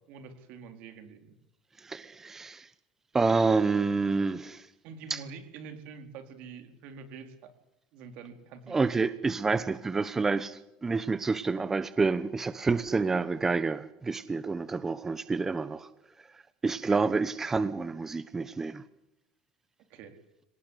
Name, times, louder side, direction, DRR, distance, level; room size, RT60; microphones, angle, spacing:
voice 1, 0.1-1.3 4.8-7.5 7.9-9.0 16.9-17.0 19.9-20.2, right 5 dB, 70° right, 4.3 m, -46 dB
voice 2, 1.8-2.7 3.1-4.7 5.1-5.2 8.7-15.9 16.6-18.8, right 4 dB, 15° right, 1.0 m, -28 dB
25.5 x 19.0 x 8.3 m
cardioid pair, 125°, 2 cm